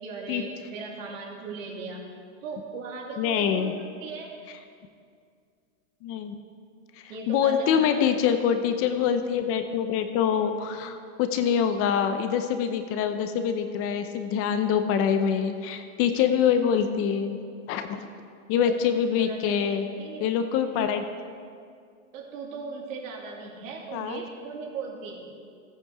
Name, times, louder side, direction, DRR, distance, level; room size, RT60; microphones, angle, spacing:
voice 1, 0.0-2.0 2.4-3.7 4.0-4.3 7.1-8.2 18.6-20.3 22.1-25.2, right 4 dB, 70° right, -2 dB, 3.1 m, -38 dB
voice 2, 3.2-3.7 6.0-6.3 7.3-17.4 17.7-18.0 18.5-19.9 20.2-21.0 23.9-24.2, left 8 dB, 35° left, 8 dB, 0.7 m, -25 dB
17.5 x 8.8 x 4.8 m, 2.2 s
supercardioid pair, 145°, 42 cm